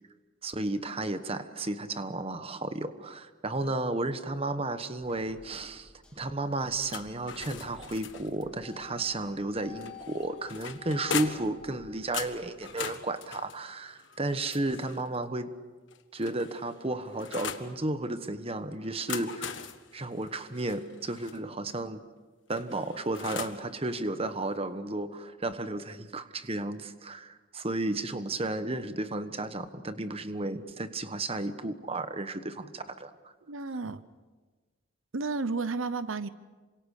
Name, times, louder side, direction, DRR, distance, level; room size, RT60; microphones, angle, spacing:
voice 1, 0.4-15.6 16.1-22.0 22.5-33.3, right 2 dB, 30° right, 10 dB, 1.2 m, -33 dB
sound 1, 5.0-12.7, left 6 dB, 5° left, 3.4 m, -52 dB
sound 2, 6.9-8.5 9.8-11.6 12.1-15.1 15.9-17.7 18.8-21.4 22.5-23.7, left 7 dB, 65° left, 1.5 m, -40 dB
voice 2, 33.5-34.0 35.1-36.3, right 3 dB, 80° right, 14 dB, 0.9 m, -32 dB
28.0 x 26.0 x 6.6 m, 1.3 s
head